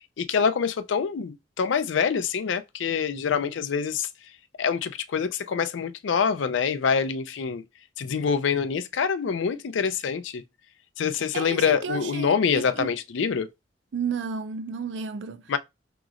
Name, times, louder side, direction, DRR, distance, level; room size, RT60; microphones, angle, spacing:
voice 1, 0.0-4.1 4.6-7.6 8.0-10.4 11.0-13.5 15.5-15.6, left 6 dB, 85° left, 0.4 m, -25 dB
voice 2, 11.3-12.9 13.9-15.4, right 6 dB, 70° right, 0.4 m, -32 dB
4.9 x 2.9 x 2.4 m
head